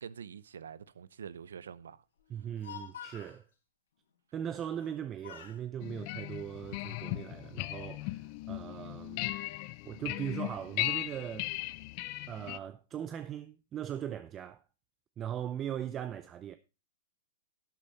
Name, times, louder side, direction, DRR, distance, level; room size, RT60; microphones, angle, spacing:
voice 1, 0.0-2.0, right 7 dB, 90° right, 0.7 m, -46 dB
voice 2, 2.3-3.4 4.3-9.4 9.8-11.5 12.3-14.6 15.2-16.6, right 10 dB, 25° right, 0.6 m, -39 dB
Speech, 2.4-3.4 4.7-5.0 5.2-5.6 6.3-7.1, left 8 dB, 85° left, 4.8 m, -48 dB
sound 1, 5.8-12.6, left 19 dB, 45° left, 0.6 m, -37 dB
11.5 x 8.7 x 4.1 m
hypercardioid pair, 140°, 0 cm